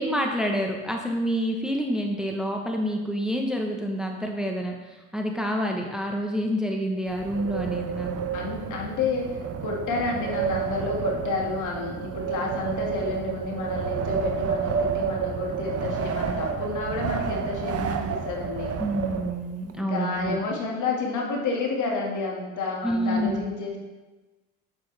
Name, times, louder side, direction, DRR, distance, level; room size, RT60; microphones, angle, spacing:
voice 1, 0.0-8.1 18.8-20.4 22.8-23.5, equal, ahead, 2 dB, 1.2 m, -28 dB
Wind, 7.1-19.7, right 6 dB, 40° right, 1.0 m, -30 dB
voice 2, 8.3-18.8 19.8-23.8, left 3 dB, 55° left, 0 dB, 2.2 m, -30 dB
8.2 x 7.8 x 3.5 m, 1.2 s
hypercardioid pair, 75°, 36 cm